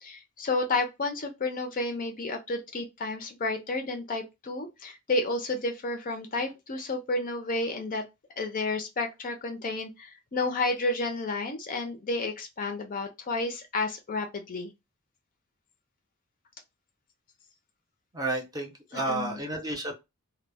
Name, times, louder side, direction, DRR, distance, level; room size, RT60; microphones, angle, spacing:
voice 1, 0.0-8.0 8.4-14.7 18.9-19.4, left 2 dB, 40° left, 0.4 m, -31 dB
voice 2, 18.1-19.9, right 2 dB, 15° right, 0.6 m, -31 dB
2.1 x 2.0 x 3.3 m
head